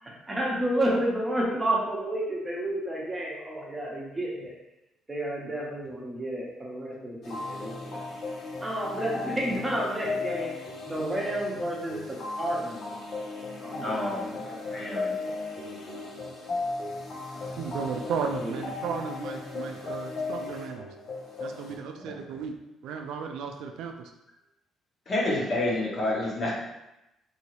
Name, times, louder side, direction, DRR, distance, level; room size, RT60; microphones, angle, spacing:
voice 1, 0.0-4.5 5.1-8.0 8.6-10.5 10.9-12.9 13.6-15.0 15.6-16.1 17.4-17.9 18.4-18.6 19.5-19.6, right 1 dB, 20° right, -3 dB, 0.9 m, -31 dB
Hip Hop Music, 7.2-21.8, left 3 dB, 65° left, 0.7 m, -36 dB
voice 2, 13.8-14.4 14.7-15.1 22.0-22.2 25.1-26.5, left 1 dB, 40° left, -5 dB, 1.2 m, -29 dB
voice 3, 17.6-20.9 21.4-22.5 22.8-24.1, right 6 dB, 80° right, 5 dB, 0.3 m, -34 dB
2.7 x 2.7 x 3.0 m, 0.90 s
supercardioid pair, 75°, 0 cm